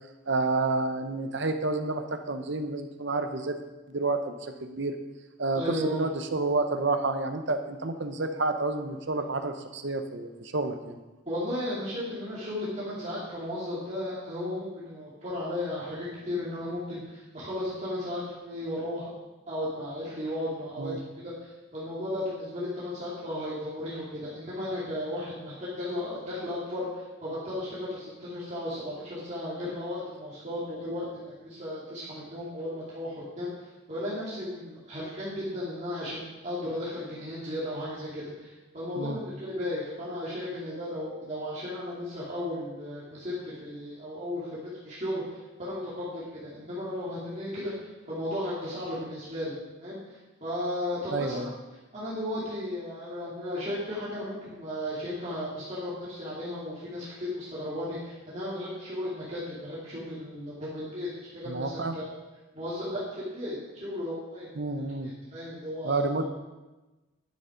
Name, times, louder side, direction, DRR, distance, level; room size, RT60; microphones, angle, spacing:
voice 1, 0.3-3.6 3.9-5.0 5.4-11.0 20.8-21.0 39.0-39.2 51.1-51.5 61.5-61.9 64.6-65.1 65.8-66.3, right 3 dB, 55° right, 8 dB, 0.8 m, -29 dB
voice 2, 5.5-6.0 11.2-19.1 19.5-31.0 31.4-47.7 48.1-51.4 51.9-62.0 62.5-66.1, left 1 dB, 35° right, -9 dB, 2.7 m, -35 dB
11.5 x 6.9 x 5.1 m, 1.1 s
head